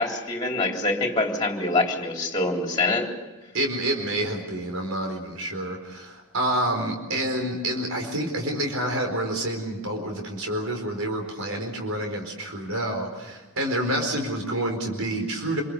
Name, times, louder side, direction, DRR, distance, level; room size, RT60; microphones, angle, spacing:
voice 1, 0.0-3.1, left 2 dB, 20° left, 1 dB, 3.7 m, -25 dB
voice 2, 3.5-15.6, right 1 dB, 75° right, 3 dB, 4.4 m, -28 dB
27.0 x 22.5 x 6.7 m, 1.2 s
head